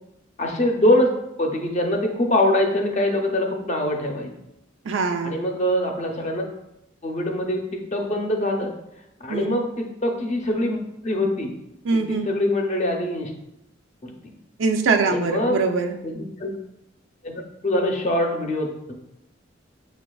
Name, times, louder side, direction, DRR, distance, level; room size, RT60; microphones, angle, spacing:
voice 1, 0.4-1.1 1.4-4.3 5.2-6.4 7.0-8.7 9.2-10.8 11.0-11.5 11.9-13.3 14.0-14.1 15.1-15.6 16.0-16.5 17.2-18.9, left 1 dB, 40° left, 2 dB, 0.5 m, -23 dB
voice 2, 4.9-5.4 9.3-9.6 11.8-12.3 14.6-16.0, right 4 dB, 85° right, 5 dB, 0.4 m, -23 dB
6.6 x 2.3 x 2.3 m, 0.86 s
head